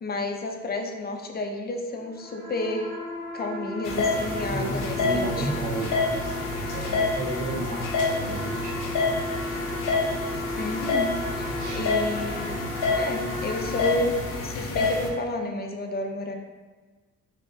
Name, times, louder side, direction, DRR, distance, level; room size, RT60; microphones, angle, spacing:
voice 1, 0.0-2.9 3.3-5.5 10.6-11.1 11.4-12.6 12.9-16.3, left 2 dB, 30° left, 3 dB, 0.5 m, -31 dB
sound 1, 1.9-14.7, left 1 dB, 10° left, 0.8 m, -35 dB
sound 2, 3.8-15.1, left 3 dB, 85° left, 0.7 m, -28 dB
voice 2, 4.5-8.9 11.6-11.8, right 2 dB, 70° right, 1 dB, 0.7 m, -33 dB
6.1 x 2.1 x 2.6 m, 1.3 s
cardioid pair, 90°, 30 cm